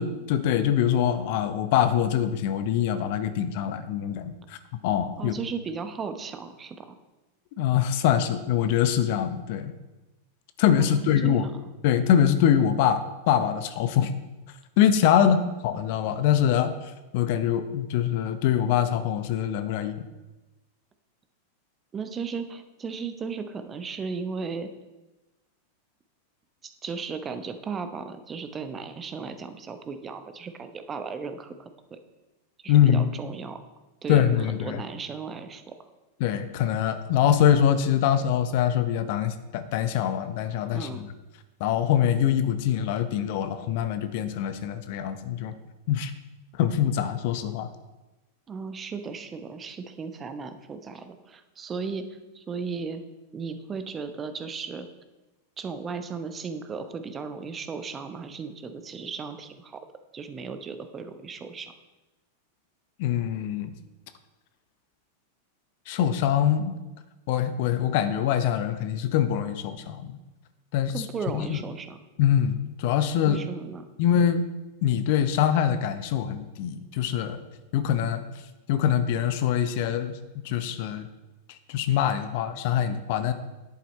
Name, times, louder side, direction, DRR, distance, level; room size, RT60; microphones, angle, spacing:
voice 1, 0.0-4.6 4.8-5.3 7.6-9.7 10.6-11.4 11.8-13.0 13.3-14.1 14.8-15.4 15.6-16.7 17.1-20.0 32.7-33.1 34.1-34.8 36.2-41.1 41.6-45.5 45.9-46.1 46.6-47.7 63.0-63.7 65.9-66.7 67.3-70.2 70.7-70.9 71.3-71.6 72.2-73.4 74.0-74.4 74.8-77.4 77.7-78.2 78.7-80.1 80.4-81.1 81.7-83.3, left 9 dB, 50° left, 11 dB, 0.7 m, -24 dB
voice 2, 5.2-6.8 10.8-11.5 15.2-15.4 21.9-24.7 26.6-32.0 32.6-33.6 34.0-35.7 40.7-41.0 48.5-52.0 52.3-53.0 53.3-54.9 55.6-59.8 60.1-61.7 70.9-72.0 73.2-73.9, right 5 dB, 20° right, 9 dB, 0.8 m, -36 dB
10.5 x 8.4 x 4.2 m, 1.1 s
figure-of-eight pair, 90°, 0 cm